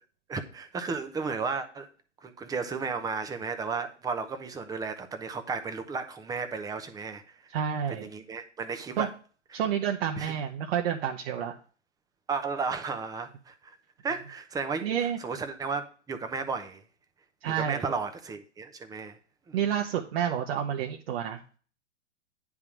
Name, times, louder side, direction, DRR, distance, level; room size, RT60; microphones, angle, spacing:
voice 1, 0.3-1.9 2.2-7.4 7.9-9.1 9.5-9.6 10.2-10.3 12.3-13.8 14.0-16.8 17.4-19.2 19.5-19.6, right 5 dB, 10° right, 8 dB, 0.8 m, -34 dB
voice 2, 7.5-8.1 9.0-9.1 9.5-11.5 14.8-15.2 17.4-17.8 19.5-21.4, right 9 dB, 55° right, 2 dB, 1.1 m, -29 dB
9.6 x 3.7 x 6.0 m, 0.40 s
hypercardioid pair, 120°, 36 cm